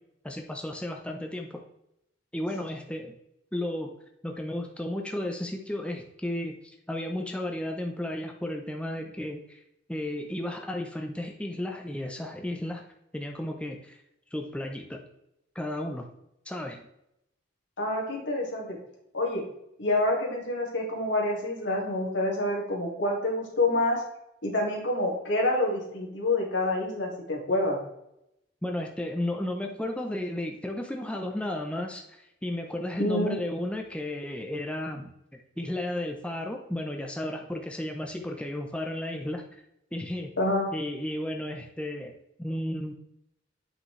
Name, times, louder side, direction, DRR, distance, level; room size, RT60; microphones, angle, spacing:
voice 1, 0.2-1.6 2.3-3.2 3.5-3.9 4.2-9.6 9.9-12.8 13.1-14.0 14.3-15.0 15.5-16.1 16.5-16.8 28.6-39.5 39.9-40.3 40.7-42.1 42.4-42.9, left 1 dB, 5° left, 2 dB, 0.7 m, -33 dB
voice 2, 17.8-18.8 19.1-19.5 19.8-24.0 24.4-27.8 33.0-33.4 40.4-40.7, left 1 dB, 80° left, -2 dB, 2.5 m, -27 dB
8.0 x 6.0 x 3.2 m, 0.82 s
head